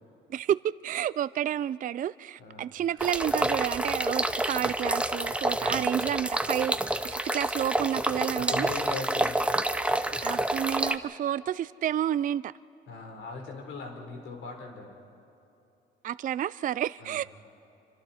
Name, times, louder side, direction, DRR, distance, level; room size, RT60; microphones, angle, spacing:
voice 1, 0.3-8.7 10.2-12.5 16.0-17.2, right 10 dB, 45° right, 16 dB, 0.4 m, -30 dB
voice 2, 2.4-2.7 5.6-5.9 8.4-9.4 12.9-14.9 17.0-17.2, left 3 dB, 75° left, 2 dB, 3.9 m, -39 dB
sound 1, 3.0-11.0, right 1 dB, 5° right, 0.8 m, -28 dB
27.5 x 25.0 x 4.3 m, 2.8 s
cardioid pair, 90°, 20 cm